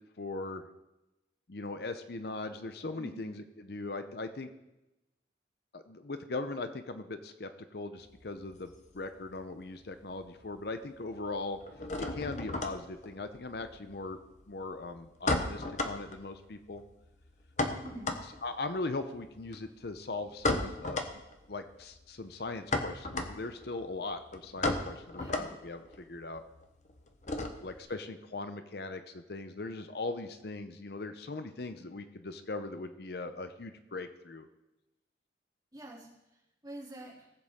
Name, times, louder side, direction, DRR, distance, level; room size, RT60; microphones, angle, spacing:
voice 1, 0.2-0.7 1.5-4.5 5.7-11.6 12.1-14.2 14.5-16.8 18.4-21.0 21.5-26.4 27.6-34.5, left 3 dB, 60° left, 9 dB, 0.7 m, -39 dB
sound 1, 8.0-9.6 9.9-10.6 10.8-27.9, left 2 dB, 40° left, 1.0 m, -36 dB
voice 2, 17.8-18.1 25.2-25.4 27.4-27.5 35.7-36.1 36.6-37.2, right 1 dB, 20° right, -4 dB, 2.9 m, -46 dB
18.5 x 7.8 x 3.6 m, 0.96 s
head